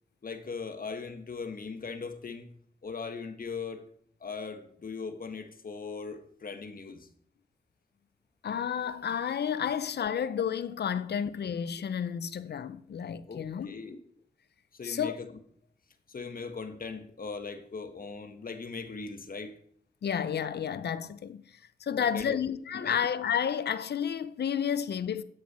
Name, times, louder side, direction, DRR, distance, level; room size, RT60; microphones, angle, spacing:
voice 1, 0.2-2.5 2.8-3.9 4.2-7.1 13.3-14.0 14.7-15.3 16.1-19.6 21.9-22.4 22.7-23.0, left 4 dB, 60° left, 1.3 m, -39 dB
voice 2, 8.4-13.7 14.8-15.2 20.0-21.4 21.8-25.2, left 8 dB, 80° left, 0.6 m, -31 dB
12.0 x 8.9 x 4.2 m
cardioid pair, 60°, 17 cm